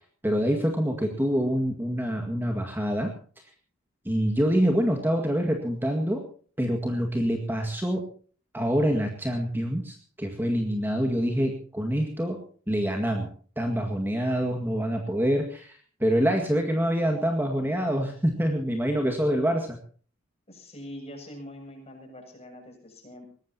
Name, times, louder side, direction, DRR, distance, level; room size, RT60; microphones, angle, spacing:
voice 1, 0.2-3.1 4.1-6.2 6.6-8.1 8.5-13.3 13.6-19.8, equal, 10° right, 2 dB, 2.0 m, -26 dB
voice 2, 20.5-23.3, left 1 dB, 30° left, 2 dB, 7.2 m, -43 dB
22.5 x 18.5 x 2.9 m, 0.43 s
head